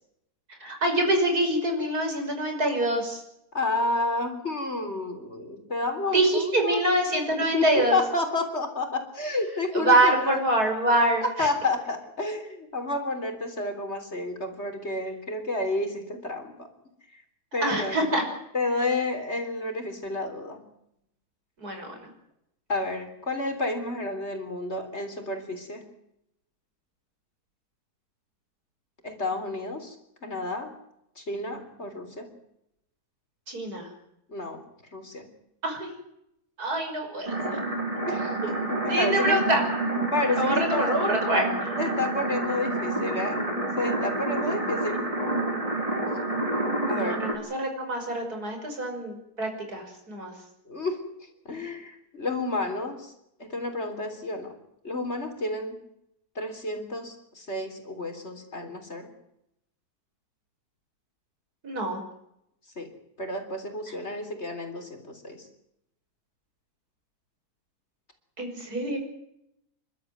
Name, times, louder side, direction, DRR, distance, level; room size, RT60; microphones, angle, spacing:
voice 1, 0.6-3.2 6.1-8.0 9.7-11.5 17.6-18.2 21.6-21.9 33.5-33.9 35.6-35.9 36.6-37.6 38.9-39.6 40.4-41.7 46.9-50.3 61.6-62.0 68.4-69.0, right 1 dB, 70° right, 3 dB, 6.3 m, -25 dB
voice 2, 3.5-6.8 7.3-10.4 11.2-16.7 17.1-17.2 17.5-18.2 18.5-20.6 22.7-25.9 29.0-30.0 30.2-30.7 31.2-32.3 34.3-34.6 34.9-35.3 38.1-38.3 38.7-39.4 40.1-41.0 41.8-43.4 43.8-45.1 46.9-47.3 50.7-51.1 51.5-53.1 53.4-54.5 54.8-55.8 56.4-59.1 62.8-62.9 63.2-65.5, left 2 dB, 40° left, 5 dB, 3.8 m, -30 dB
sound 1, 37.3-47.3, right 2 dB, 20° right, 4.5 m, -28 dB
29.5 x 12.5 x 9.4 m, 0.82 s
omnidirectional pair, 1.7 m